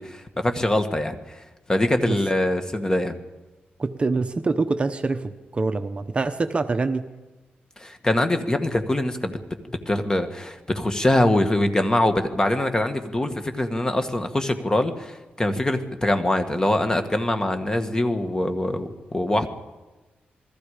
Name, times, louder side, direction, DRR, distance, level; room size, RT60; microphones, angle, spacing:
voice 1, 0.0-1.4 1.7-3.2 7.8-9.4 9.7-19.5, left 1 dB, 20° left, 7 dB, 2.0 m, -23 dB
voice 2, 3.8-7.1, right 3 dB, 30° right, 8 dB, 1.0 m, -25 dB
28.5 x 20.5 x 5.1 m, 1.1 s
wide cardioid pair, 110°, 4 cm